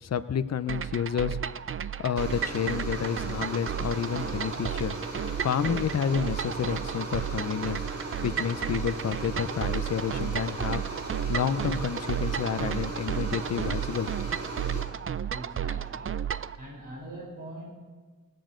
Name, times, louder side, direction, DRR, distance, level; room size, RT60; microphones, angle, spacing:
voice 1, 0.0-1.4 2.0-4.9 5.4-7.8 8.2-10.8 11.3-14.1 14.7-14.8, left 8 dB, 50° left, 12 dB, 0.7 m, -30 dB
sound 1, 0.7-16.6, right 8 dB, 40° right, 0.5 m, -33 dB
sound 2, 2.2-14.8, right 2 dB, 60° right, 4.3 m, -38 dB
voice 2, 15.2-16.2 16.6-17.7, right 1 dB, 85° right, -3 dB, 4.3 m, -43 dB
18.5 x 7.7 x 5.1 m, 1.4 s
cardioid pair, 50°, 33 cm